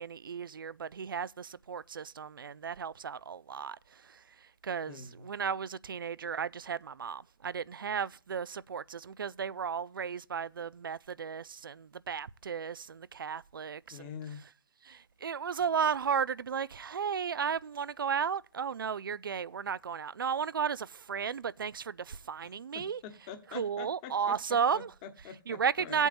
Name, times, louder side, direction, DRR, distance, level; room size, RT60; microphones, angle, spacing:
voice 1, 0.0-4.2 4.6-14.2 14.8-23.0 23.5-24.9 25.5-26.1, right 7 dB, 80° right, 0.5 m, -34 dB
voice 2, 4.9-5.3 13.9-14.4 22.7-24.3 24.7-26.0, left 7 dB, 25° left, 1.2 m, -45 dB
16.0 x 8.1 x 2.6 m
hypercardioid pair, 155°, 11 cm